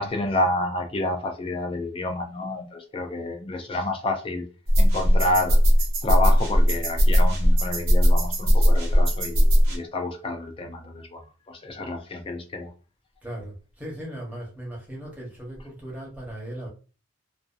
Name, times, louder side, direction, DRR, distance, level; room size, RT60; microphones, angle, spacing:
voice 1, 0.0-4.4 4.8-5.6 6.0-11.2 11.5-12.7, left 2 dB, 25° left, 0.4 m, -29 dB
sound 1, 4.7-9.8, equal, 70° right, 0.7 m, -19 dB
voice 2, 13.2-16.7, right 1 dB, 10° right, 0.8 m, -37 dB
2.6 x 2.3 x 2.3 m
head